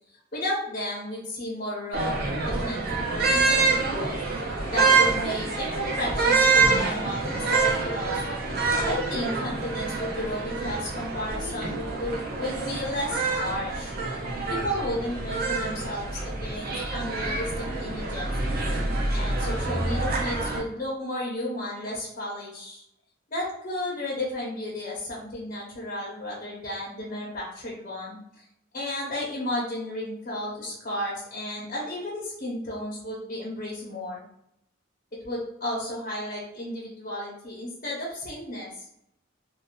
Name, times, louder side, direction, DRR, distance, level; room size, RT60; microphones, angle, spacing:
voice 1, 0.3-8.2 8.8-13.9 14.5-18.3 19.1-22.8 23.3-28.2 28.7-34.2 35.1-38.8, left 1 dB, 45° left, -5 dB, 0.8 m, -33 dB
sound 1, 1.9-20.6, right 3 dB, 50° right, 0.7 m, -26 dB
2.7 x 2.4 x 3.1 m, 0.77 s
head